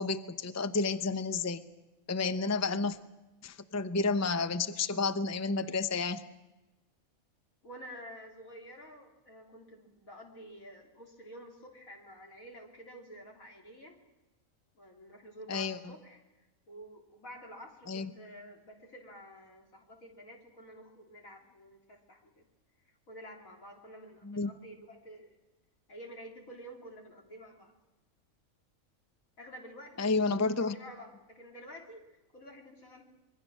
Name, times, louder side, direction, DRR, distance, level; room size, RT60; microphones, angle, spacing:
voice 1, 0.0-1.6 2.1-3.0 3.4-6.2 15.5-15.9 17.9-18.1 24.2-24.5 30.0-30.7, left 4 dB, 15° left, 10 dB, 0.6 m, -31 dB
voice 2, 7.6-14.0 14.7-22.5 22.8-25.4 25.9-27.7 29.4-33.1, equal, 70° left, 0 dB, 3.9 m, -50 dB
26.0 x 22.0 x 6.3 m, 1.1 s
omnidirectional pair, 1.5 m